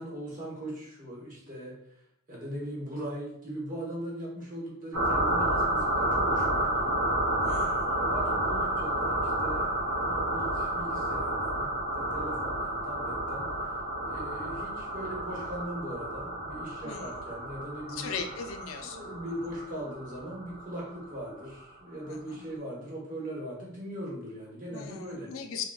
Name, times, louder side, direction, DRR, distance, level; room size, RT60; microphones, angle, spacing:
voice 1, 0.0-1.8 2.3-7.0 7.6-13.5 14.0-18.1 18.8-25.3, right 1 dB, 40° right, -4 dB, 1.0 m, -40 dB
sound 1, 4.9-21.2, right 1 dB, 85° right, 0.8 m, -30 dB
voice 2, 7.4-7.9 16.8-17.2 17.9-19.1 22.1-22.4 24.7-25.6, left 6 dB, 75° left, 5 dB, 0.4 m, -39 dB
3.8 x 2.0 x 2.3 m, 0.73 s
head